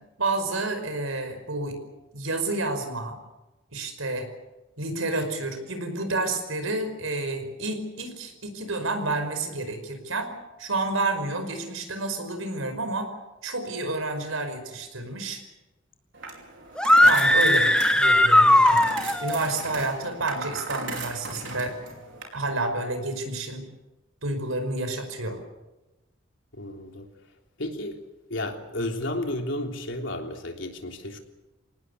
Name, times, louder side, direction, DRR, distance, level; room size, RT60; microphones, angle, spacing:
voice 1, 0.2-1.8 2.1-3.2 3.7-4.3 4.8-10.3 10.6-13.1 13.4-15.4 17.0-18.9 19.2-21.8 22.3-23.6 24.2-25.4, right 2 dB, 85° right, 7 dB, 5.3 m, -29 dB
sound 1, 16.1-22.2, right 3 dB, 65° right, 5.1 m, -37 dB
sound 2, 16.8-19.4, left 1 dB, 5° left, 1.2 m, -18 dB
voice 2, 26.5-27.1 27.6-28.0 28.3-31.2, left 1 dB, 65° left, 3 dB, 3.5 m, -32 dB
26.5 x 19.0 x 8.3 m, 1.0 s
head